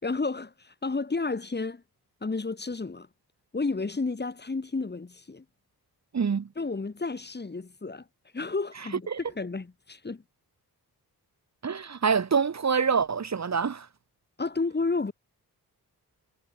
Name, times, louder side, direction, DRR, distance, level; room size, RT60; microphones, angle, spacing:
voice 1, 0.0-1.8 2.2-3.1 3.5-5.4 6.6-8.0 8.3-9.1 9.4-10.2 14.4-15.1, left 3 dB, 25° left, 5.6 m, -31 dB
voice 2, 6.1-6.5 9.1-9.2 11.6-13.9, right 6 dB, 45° right, 2.4 m, -26 dB
wide cardioid pair, 155°, 37 cm